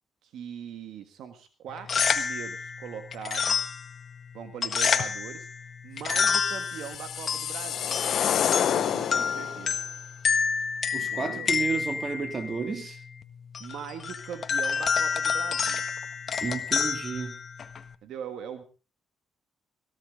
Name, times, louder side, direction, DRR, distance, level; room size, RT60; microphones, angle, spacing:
voice 1, 0.2-3.7 4.3-5.5 5.8-8.0 8.7-9.8 11.0-11.5 13.6-15.8 18.0-18.6, right 8 dB, 80° right, 1.5 m, -41 dB
sound 1, 1.7-17.9, left 6 dB, 50° left, 1.5 m, -29 dB
sound 2, 6.5-9.7, left 9 dB, 65° left, 0.8 m, -28 dB
voice 2, 10.9-13.0 16.4-17.4, right 5 dB, 40° right, 2.6 m, -32 dB
17.5 x 15.5 x 3.8 m
cardioid pair, 90°, 0 cm